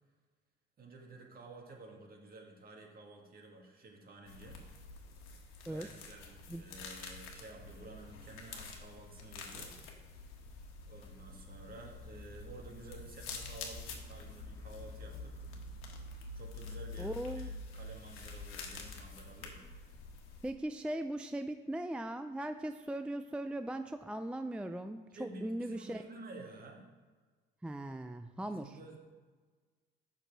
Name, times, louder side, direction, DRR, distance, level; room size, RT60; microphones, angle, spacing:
voice 1, 0.8-4.6 5.6-9.7 10.9-15.4 16.3-19.6 25.1-26.9 28.4-29.0, right 2 dB, 45° right, 1 dB, 1.9 m, -52 dB
sound 1, 4.3-20.5, left 3 dB, 80° left, 1.3 m, -47 dB
voice 2, 17.0-17.5 20.4-26.0 27.6-28.8, right 1 dB, 5° right, 9 dB, 0.3 m, -39 dB
6.6 x 6.1 x 4.6 m, 1.4 s
supercardioid pair, 75°, 21 cm